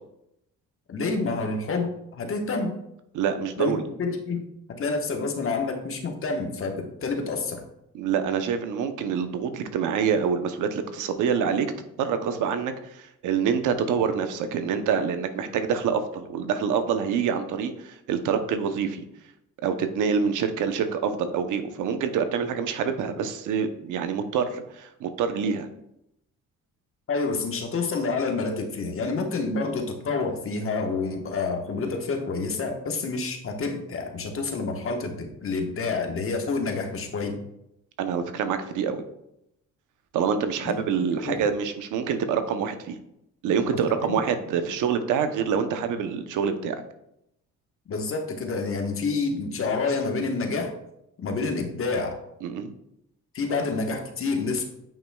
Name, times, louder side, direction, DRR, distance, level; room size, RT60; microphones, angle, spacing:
voice 1, 0.9-2.7 3.6-7.6 27.1-37.4 40.6-40.8 41.2-41.4 43.7-44.2 47.9-50.7 51.2-52.2 53.3-54.6, left 4 dB, 45° left, 3 dB, 1.2 m, -28 dB
voice 2, 3.1-3.8 7.9-11.7 12.0-19.0 19.6-25.7 38.0-39.0 40.1-43.0 43.4-46.8 52.4-52.7, right 7 dB, 85° right, 9 dB, 0.8 m, -26 dB
9.0 x 5.4 x 2.3 m, 0.81 s
cardioid pair, 90°, 30 cm